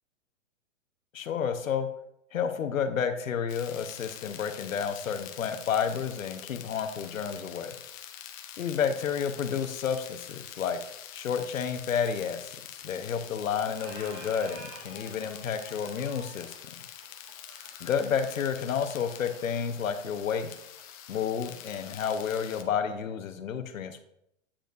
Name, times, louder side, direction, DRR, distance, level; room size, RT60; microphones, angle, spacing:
voice 1, 1.1-1.9 2.3-7.7 8.6-10.8 11.1-12.5 12.8-16.5 17.8-20.5 21.1-24.0, left 7 dB, 85° left, 9 dB, 0.9 m, -30 dB
sound 1, 3.5-22.6, left 10 dB, 30° left, 0.5 m, -45 dB
Squeak, 12.8-13.4 13.6-21.2, right 2 dB, 25° right, 1.7 m, -51 dB
8.5 x 5.2 x 2.6 m, 0.77 s
hypercardioid pair, 135°, 39 cm